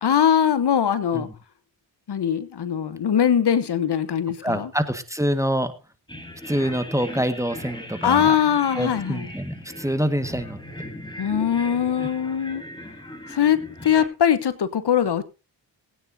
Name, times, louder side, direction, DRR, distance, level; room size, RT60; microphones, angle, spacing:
voice 1, 0.0-1.3 2.1-4.7 8.0-9.3 11.2-12.6 13.3-15.2, left 8 dB, 60° left, 14 dB, 1.2 m, -21 dB
voice 2, 4.4-5.7 6.5-8.4 8.7-10.6 12.0-12.1, equal, 5° right, 9 dB, 1.7 m, -26 dB
sound 1, 6.1-14.1, equal, 10° left, 4.1 m, -38 dB
21.0 x 9.4 x 2.8 m, 0.31 s
cardioid pair, 60°, 44 cm